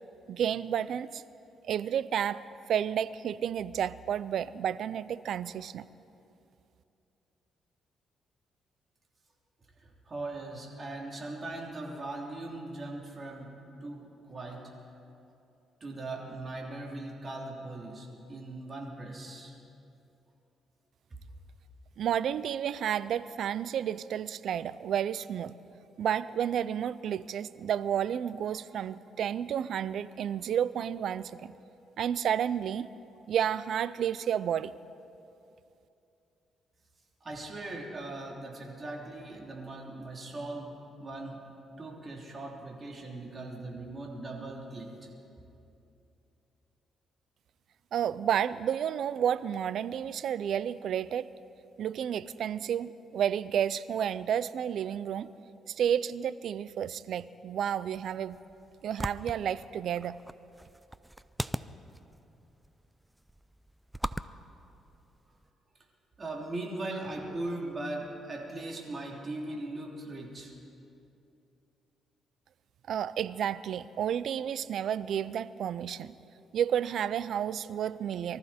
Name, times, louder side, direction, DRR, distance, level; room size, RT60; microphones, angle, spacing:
voice 1, 0.3-1.2 1.6-2.4 2.7-5.9 22.0-25.5 26.0-31.5 32.0-32.9 33.3-34.7 47.9-51.3 51.8-55.3 55.7-58.4 58.8-60.2 72.9-76.1 76.5-78.4, right 9 dB, 70° right, 17 dB, 0.4 m, -31 dB
voice 2, 9.8-14.7 15.8-19.6 37.2-41.4 41.8-45.1 66.2-70.5, right 2 dB, 35° right, -1 dB, 3.2 m, -39 dB
sound 1, 57.9-65.5, right 1 dB, 5° right, 0.4 m, -41 dB
23.5 x 14.0 x 4.3 m, 2.7 s
cardioid pair, 90°, 0 cm